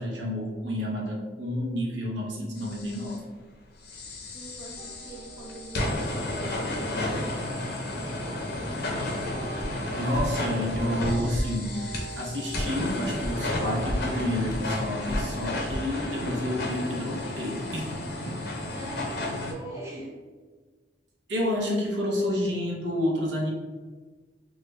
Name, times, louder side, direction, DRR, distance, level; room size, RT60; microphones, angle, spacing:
voice 1, 0.0-3.2 10.0-11.8 12.2-18.0 18.3-18.4 21.3-23.5, left 1 dB, 75° right, -2 dB, 0.7 m, -29 dB
sound 1, 2.6-3.2 3.8-19.5, left 1 dB, 60° left, 0.6 m, -32 dB
voice 2, 4.3-8.7 18.7-20.1, right 1 dB, 15° right, -4 dB, 0.6 m, -43 dB
sound 2, 4.8-14.7, right 2 dB, 55° right, 0.3 m, -45 dB
sound 3, 9.6-9.8 10.1-10.3 10.7-10.9 11.3-11.5 11.9-12.1 12.6-12.7 13.2-13.4 13.7-14.0 14.5-14.6 15.1-15.3 15.7-15.8, equal, 20° left, 0.3 m, -31 dB
3.1 x 2.3 x 3.2 m, 1.4 s
head